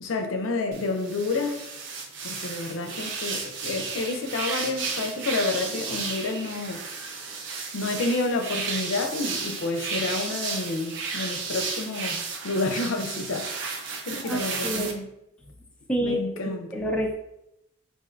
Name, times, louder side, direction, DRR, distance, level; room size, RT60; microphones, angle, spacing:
voice 1, 0.0-1.7 2.2-6.8 7.7-15.1 16.0-16.8, left 3 dB, 70° left, 0.5 m, -29 dB
sound 1, 0.7-14.9, right 4 dB, 60° right, 0.5 m, -33 dB
voice 2, 14.2-15.0 15.9-17.1, equal, 5° left, 0.3 m, -28 dB
4.3 x 2.5 x 2.4 m
head